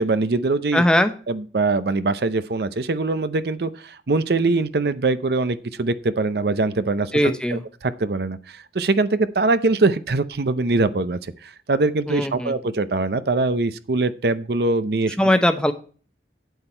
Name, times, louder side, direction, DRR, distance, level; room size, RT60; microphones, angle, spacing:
voice 1, 0.0-0.8 1.3-15.2, right 3 dB, 65° right, 13 dB, 0.6 m, -23 dB
voice 2, 0.7-1.1 7.1-7.6 12.1-12.5 15.2-15.7, left 1 dB, 5° left, 8 dB, 0.8 m, -19 dB
9.0 x 8.1 x 4.4 m, 0.40 s
head